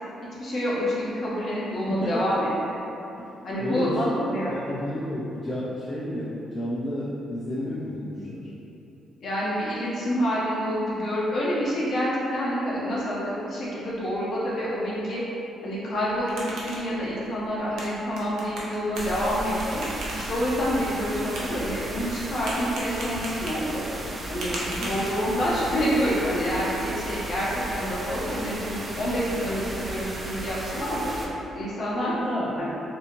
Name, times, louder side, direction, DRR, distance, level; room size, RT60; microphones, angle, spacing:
voice 1, 0.4-2.5 3.4-4.5 9.2-15.2 15.6-19.8 20.1-23.8 24.3-31.1 31.5-32.1 32.6-32.7, equal, 60° left, -7 dB, 0.8 m, -27 dB
voice 2, 1.9-2.2 3.2-3.3 3.6-4.1 4.5-8.5 24.5-24.9 32.1-32.5, left 1 dB, 40° left, -8 dB, 0.4 m, -31 dB
sound 1, 15.9-25.6, right 1 dB, 80° right, 0.6 m, -39 dB
sound 2, 18.9-31.3, right 1 dB, 30° right, 0.4 m, -35 dB
2.7 x 2.4 x 2.9 m, 2.9 s
cardioid pair, 90°, 0 cm